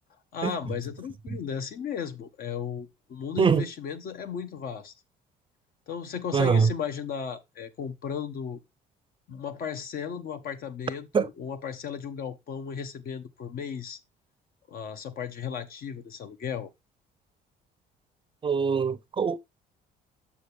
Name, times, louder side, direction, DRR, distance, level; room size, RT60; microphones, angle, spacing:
voice 1, 0.3-4.9 5.9-8.6 9.3-14.0 14.7-16.7, left 7 dB, 60° left, 1.2 m, -35 dB
voice 2, 6.3-6.7 11.1-11.3 18.4-19.4, right 6 dB, 30° right, 0.6 m, -23 dB
7.1 x 6.4 x 3.5 m
cardioid pair, 110°, 17 cm